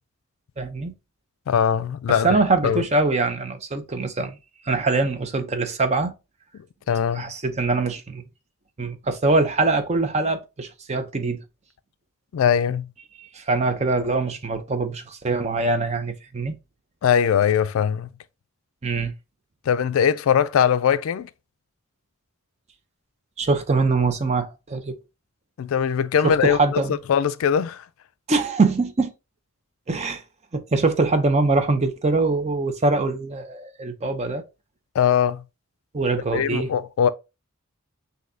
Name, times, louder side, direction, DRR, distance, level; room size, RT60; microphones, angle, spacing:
voice 1, 0.6-0.9 2.2-4.4 4.7-6.1 7.1-8.2 8.8-11.4 13.2-16.5 18.8-19.1 23.4-25.0 26.2-27.0 28.3-29.1 29.9-30.2 30.5-34.4 35.9-36.7, right 3 dB, 30° right, 0.5 m, -23 dB
voice 2, 1.5-2.3 2.6-2.8 6.9-7.3 12.3-12.9 17.0-18.1 19.7-21.3 25.6-26.8 27.1-27.8 34.9-35.4 36.3-37.1, left 8 dB, 65° left, 0.3 m, -21 dB
6.1 x 2.7 x 2.6 m
head